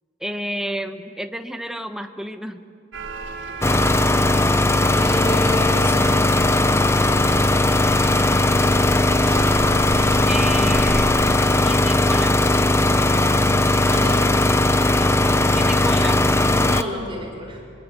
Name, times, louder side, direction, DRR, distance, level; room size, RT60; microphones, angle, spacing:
voice 1, 0.2-2.6 10.3-11.2 11.6-12.3 15.5-16.2, equal, 5° right, 7 dB, 1.2 m, -30 dB
sound 1, 2.9-11.4, right 2 dB, 85° right, 3.4 m, -35 dB
sound 2, 3.6-16.8, left 2 dB, 15° left, 0.8 m, -18 dB
voice 2, 4.9-6.0 13.8-14.2 16.4-17.6, equal, 25° right, 0 dB, 5.3 m, -30 dB
26.0 x 25.0 x 8.5 m, 2.2 s
head